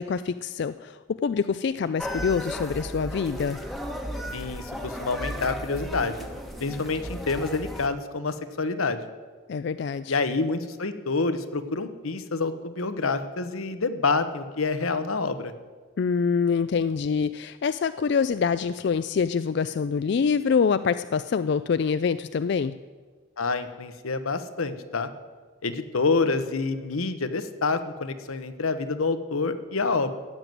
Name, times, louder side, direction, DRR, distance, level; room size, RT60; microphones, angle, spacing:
voice 1, 0.0-3.6 9.5-10.2 16.0-22.8, left 6 dB, 55° left, 13 dB, 0.3 m, -25 dB
sound 1, 2.0-7.9, equal, ahead, 1.1 m, -35 dB
voice 2, 4.3-6.2 6.6-9.0 10.1-15.5 23.4-25.1 25.6-30.1, left 3 dB, 90° left, 10 dB, 1.0 m, -27 dB
15.0 x 7.8 x 9.2 m, 1.4 s
head